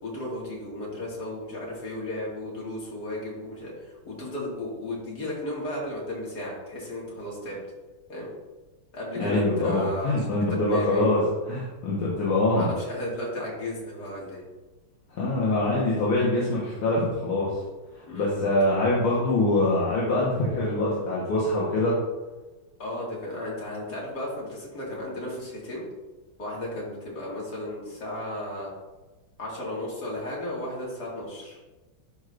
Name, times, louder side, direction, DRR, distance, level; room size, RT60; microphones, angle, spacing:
voice 1, 0.0-7.6 8.1-8.3 8.9-10.3 10.7-11.1 12.5-14.4 18.0-18.3 22.8-25.8 26.4-28.7 29.4-31.6, left 1 dB, 50° left, -4 dB, 2.6 m, -34 dB
voice 2, 9.2-12.7 15.1-17.6 18.1-22.0, left 2 dB, 80° left, -6 dB, 2.2 m, -24 dB
12.5 x 4.8 x 2.6 m, 1.2 s
omnidirectional pair, 2.3 m